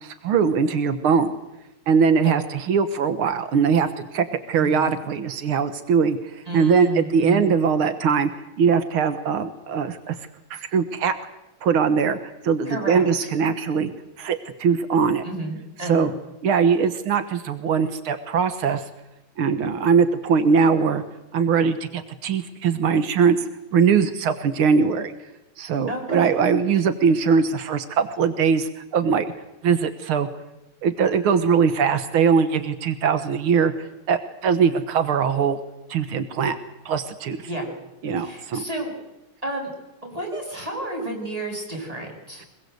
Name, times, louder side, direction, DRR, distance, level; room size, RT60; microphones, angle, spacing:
voice 1, 0.0-1.3 1.9-8.3 8.6-10.2 10.5-11.2 11.6-12.2 12.4-13.9 14.2-15.2 15.9-16.1 16.4-18.9 19.4-21.0 21.3-25.1 25.6-29.3 29.6-30.3 30.8-33.7 34.1-35.6 35.9-36.6 36.9-37.4 38.0-38.6, right 6 dB, 90° right, 11 dB, 2.2 m, -21 dB
voice 2, 4.5-4.9 6.5-7.4 12.6-13.3 15.2-16.1 25.9-26.3 37.5-37.7 38.2-38.9 39.4-39.7 40.0-42.4, right 2 dB, 15° right, 1 dB, 7.4 m, -31 dB
24.0 x 21.0 x 8.0 m, 0.94 s
omnidirectional pair, 2.3 m